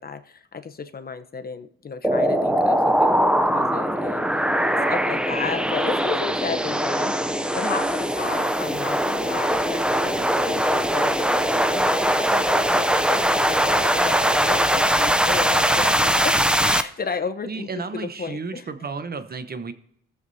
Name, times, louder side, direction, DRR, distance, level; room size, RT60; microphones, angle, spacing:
voice 1, 0.0-4.5 4.9-18.7, left 5 dB, 30° left, 9 dB, 0.8 m, -33 dB
sound 1, 2.0-16.8, equal, 5° right, 0.5 m, -21 dB
voice 2, 4.7-5.2 17.5-19.7, right 4 dB, 30° right, 10 dB, 0.9 m, -33 dB
19.0 x 7.2 x 2.7 m, 0.72 s
cardioid pair, 90°, 30 cm